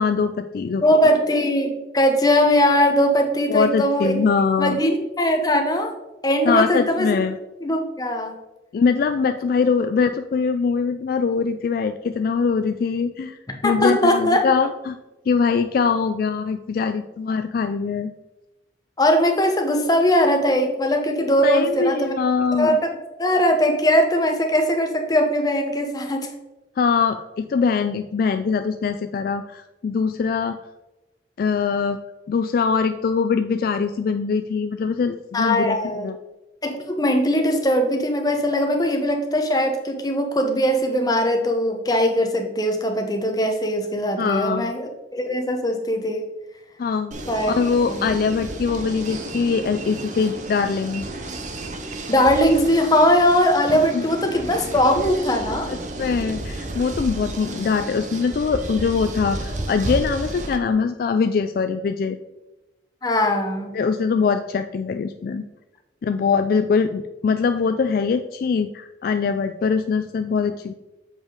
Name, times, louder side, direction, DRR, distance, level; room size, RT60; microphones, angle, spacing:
voice 1, 0.0-0.8 3.5-4.8 6.5-7.4 8.7-15.0 15.3-18.1 21.4-22.8 26.8-30.6 31.4-32.0 32.3-35.8 36.0-36.2 44.2-44.7 46.8-47.2 47.5-51.0 53.9-54.0 55.7-62.2 63.7-65.4 66.0-70.7, left 5 dB, 55° left, 8 dB, 0.3 m, -22 dB
voice 2, 0.8-4.2 4.6-5.9 6.2-7.1 7.6-8.3 13.6-14.5 19.0-22.1 22.6-22.8 23.2-26.3 35.3-36.1 36.6-46.2 47.3-47.5 47.9-48.1 52.1-55.7 63.0-63.7, equal, 20° left, 4 dB, 0.9 m, -20 dB
sound 1, 47.1-60.6, right 2 dB, 45° right, 0.7 m, -32 dB
7.2 x 5.2 x 3.8 m, 1.0 s
head